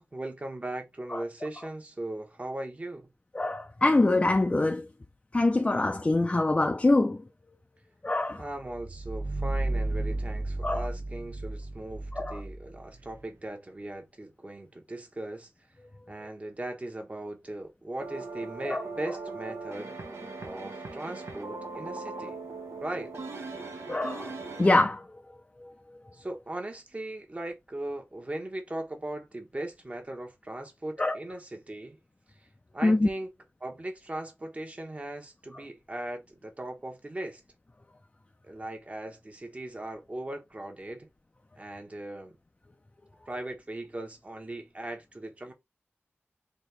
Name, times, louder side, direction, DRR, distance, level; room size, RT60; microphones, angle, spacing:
voice 1, 0.0-3.1 8.4-15.5 16.1-19.9 20.4-22.4 22.8-23.1 26.1-32.0 32.7-33.3 33.6-37.4 38.4-41.1 41.6-42.3 43.3-45.5, right 1 dB, 30° right, 1.0 m, -38 dB
voice 2, 3.4-4.8 5.3-7.2 8.0-8.4 10.6-10.8 12.2-12.4 18.7-18.8 23.9-24.3 24.6-25.0 31.0-31.1 32.8-33.1, left 2 dB, 25° left, 0.4 m, -24 dB
sound 1, 8.5-13.2, right 2 dB, 55° right, 0.4 m, -33 dB
sound 2, 18.0-24.8, right 3 dB, 80° right, 1.0 m, -39 dB
4.0 x 2.9 x 3.3 m
wide cardioid pair, 100°, 5 cm